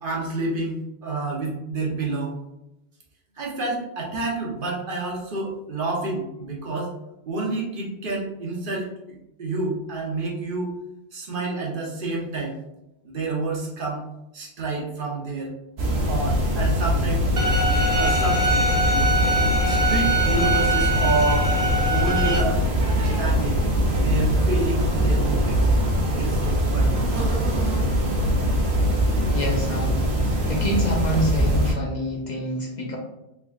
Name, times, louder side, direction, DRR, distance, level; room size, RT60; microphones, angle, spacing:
voice 1, 0.0-2.4 3.4-6.9 7.2-8.9 9.4-10.7 11.1-12.6 13.0-14.1 14.3-15.5 16.0-17.3 17.9-18.5 19.6-21.6 21.9-23.6 23.9-25.6 26.1-27.0, right 3 dB, 60° right, -3 dB, 1.0 m, -29 dB
sound 1, 15.8-31.7, equal, 90° right, 1.0 m, -22 dB
Bowed string instrument, 17.4-22.4, right 1 dB, 40° right, 0.5 m, -23 dB
voice 2, 29.3-33.0, equal, 50° left, -1 dB, 0.7 m, -27 dB
3.5 x 3.5 x 2.3 m, 0.90 s
omnidirectional pair, 1.0 m